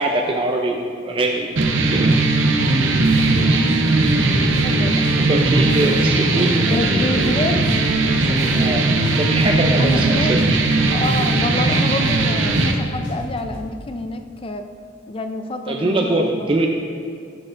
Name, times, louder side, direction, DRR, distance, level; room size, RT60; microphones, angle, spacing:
voice 1, 0.0-1.5 1.9-2.2 5.1-7.2 8.5-8.9 9.1-10.4 15.7-16.7, right 2 dB, 30° right, 1 dB, 0.4 m, -22 dB
sound 1, 1.6-12.7, right 2 dB, 90° right, 0.7 m, -18 dB
sound 2, 3.0-3.4 3.7-6.1 6.4-8.7 9.0-11.4 11.7-13.7, left 1 dB, 90° left, 0.9 m, -37 dB
voice 2, 3.3-4.3 4.6-5.1 5.8-6.0 6.6-7.7 8.0-8.9 9.8-10.3 10.9-14.7 15.1-16.5, left 2 dB, 30° left, 7 dB, 0.4 m, -28 dB
12.5 x 6.5 x 2.5 m, 2.3 s
head